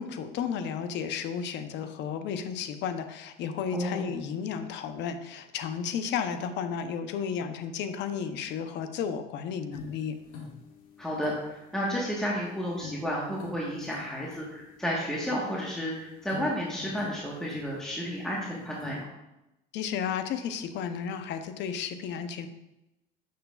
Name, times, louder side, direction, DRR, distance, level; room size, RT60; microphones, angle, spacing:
voice 1, 0.0-10.2 19.7-22.5, left 7 dB, 60° left, 9 dB, 0.7 m, -33 dB
voice 2, 3.7-4.0 11.0-19.1, equal, ahead, -4 dB, 1.2 m, -32 dB
sound 1, 9.7-19.0, left 4 dB, 75° left, 1.8 m, -47 dB
6.7 x 6.4 x 2.3 m, 0.92 s
supercardioid pair, 105°, 21 cm